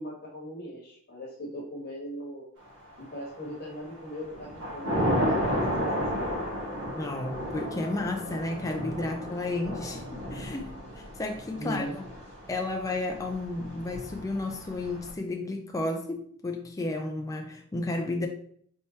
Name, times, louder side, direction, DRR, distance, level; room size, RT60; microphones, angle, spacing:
voice 1, 0.0-2.5 3.0-4.5 4.7-6.4 11.6-12.0, equal, 45° left, -4 dB, 1.3 m, -39 dB
Thunder / Rain, 3.0-3.6 4.0-15.1, equal, 55° right, 1.2 m, -33 dB
voice 2, 7.0-12.0 12.5-18.3, left 2 dB, 15° left, 3 dB, 0.3 m, -32 dB
4.3 x 3.4 x 2.8 m, 0.63 s
head